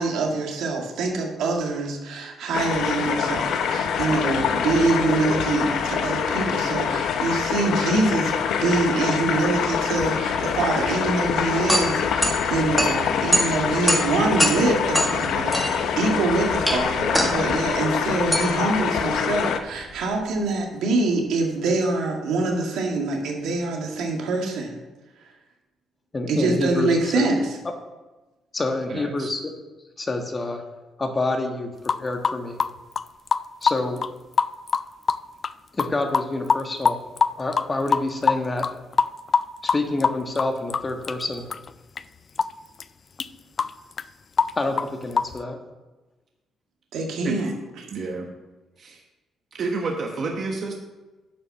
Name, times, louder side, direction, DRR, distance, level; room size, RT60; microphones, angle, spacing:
voice 1, 0.0-24.8 26.3-27.6 46.9-47.5, right 3 dB, 80° right, 1 dB, 1.9 m, -25 dB
sound 1, 2.5-19.6, left 7 dB, 75° left, 0.7 m, -25 dB
sound 2, 11.2-20.4, equal, ahead, 1.8 m, -26 dB
voice 2, 26.1-27.3 28.5-29.5 30.0-30.6 31.0-31.7 32.0-32.6 33.6-34.0 35.7-37.0 37.4-38.7 39.6-41.4 44.6-45.6, left 2 dB, 25° left, 4 dB, 1.4 m, -27 dB
voice 3, 28.9-29.3 47.2-47.4 47.9-48.3 48.8-49.0 49.5-50.8, right 4 dB, 55° right, 1 dB, 1.2 m, -29 dB
sound 3, 31.9-34.1 34.4-35.2 35.4-35.5 35.8-35.9 36.1-41.2 41.5-41.7 42.0-42.1 42.4-42.5 42.8-42.9 43.2-43.3 43.6-44.0 44.4-44.5 44.8-45.4, left 5 dB, 45° left, 0.3 m, -22 dB
9.1 x 5.6 x 5.9 m, 1.1 s
cardioid pair, 90°, 0 cm